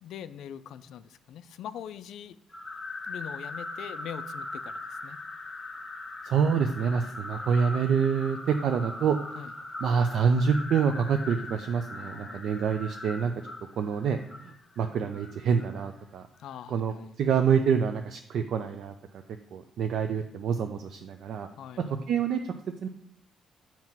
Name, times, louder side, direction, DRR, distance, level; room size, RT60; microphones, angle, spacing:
voice 1, 0.0-2.4 3.0-5.2 9.4-9.5 11.9-12.4 12.9-13.0 16.4-17.1 21.6-21.9, left 9 dB, 70° left, 13 dB, 0.3 m, -43 dB
sound 1, 2.5-15.9, left 2 dB, 20° left, 0.7 m, -40 dB
voice 2, 6.2-9.2 9.8-13.3 13.8-16.2 16.7-19.2 19.5-21.5 22.1-22.5 22.8-22.9, right 6 dB, 60° right, 6 dB, 0.4 m, -27 dB
7.2 x 2.9 x 5.9 m, 0.72 s
cardioid pair, 155°, 0 cm